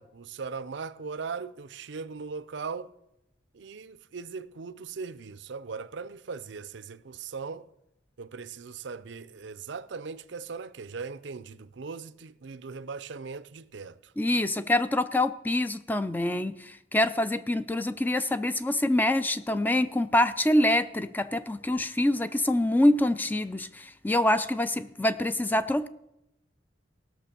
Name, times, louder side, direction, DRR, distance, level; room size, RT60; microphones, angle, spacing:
voice 1, 0.0-2.9 3.5-7.7 8.2-14.1, right 5 dB, 70° right, 0.5 m, -39 dB
voice 2, 14.2-25.9, left 1 dB, 10° left, 0.4 m, -25 dB
16.5 x 6.4 x 6.7 m
head